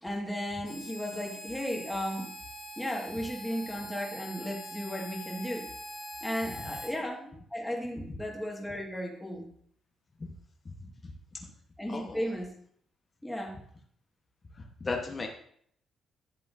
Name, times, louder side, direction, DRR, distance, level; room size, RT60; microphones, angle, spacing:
voice 1, 0.0-2.3 2.8-5.7 6.2-9.5 11.8-12.5 13.2-13.6, equal, 5° left, -1 dB, 1.8 m, -35 dB
Harmonica, 0.6-7.0, equal, 45° left, 3.1 m, -43 dB
voice 2, 11.9-12.2 14.6-15.3, left 3 dB, 30° left, 2 dB, 1.1 m, -36 dB
11.0 x 7.5 x 2.6 m, 0.64 s
cardioid pair, 90°, 0 cm